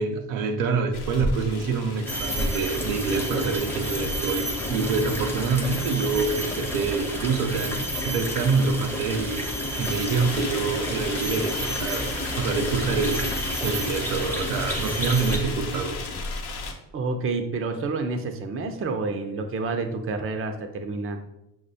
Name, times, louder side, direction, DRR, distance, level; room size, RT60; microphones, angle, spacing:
voice 1, 0.0-9.5 9.8-13.3 13.6-16.0, right 4 dB, 80° right, 4 dB, 0.6 m, -26 dB
sound 1, 0.9-16.7, left 2 dB, 50° left, 0.8 m, -35 dB
sound 2, 2.1-15.4, equal, 5° left, 0.7 m, -30 dB
voice 2, 16.9-21.2, right 3 dB, 30° right, 6 dB, 0.5 m, -29 dB
5.8 x 2.1 x 2.6 m, 0.87 s
hypercardioid pair, 50°, 49 cm